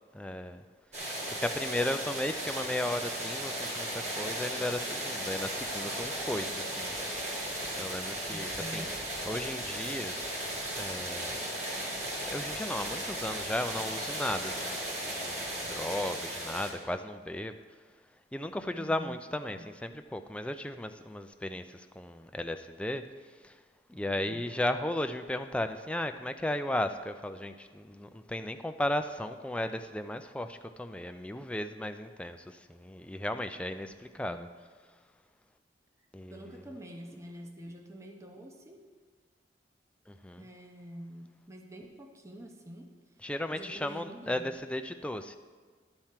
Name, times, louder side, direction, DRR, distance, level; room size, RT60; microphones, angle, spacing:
voice 1, 0.1-0.6 1.3-6.9 7.8-8.9 9.3-10.1 10.8-11.3 12.3-17.5 18.3-23.0 23.4-23.5 23.9-34.5 36.1-36.4 40.1-40.4 43.2-45.4, left 1 dB, 5° left, 8 dB, 0.4 m, -35 dB
sound 1, 0.9-16.7, right 1 dB, 40° right, 2.1 m, -36 dB
voice 2, 8.3-9.0 18.7-19.7 34.1-34.5 36.3-38.8 40.4-43.0 43.5-44.5, equal, 15° right, 2 dB, 0.8 m, -47 dB
12.0 x 4.4 x 7.4 m, 1.5 s
head